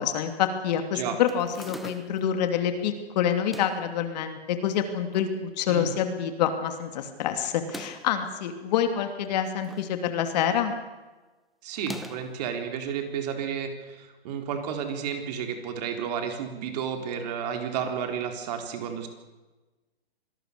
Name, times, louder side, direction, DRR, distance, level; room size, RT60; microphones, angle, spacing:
voice 1, 0.0-10.7, left 9 dB, 45° left, 7 dB, 2.8 m, -27 dB
sound 1, 1.3-2.3 3.3-3.9 4.7-5.3 5.7-5.8 6.0-6.1 7.5-8.2 9.2-10.0 10.3-10.6 11.7-12.4, equal, ahead, 0.8 m, -42 dB
voice 2, 11.6-19.1, right 7 dB, 40° right, 4 dB, 4.0 m, -32 dB
26.0 x 19.0 x 6.8 m, 1.2 s
hypercardioid pair, 145°, 31 cm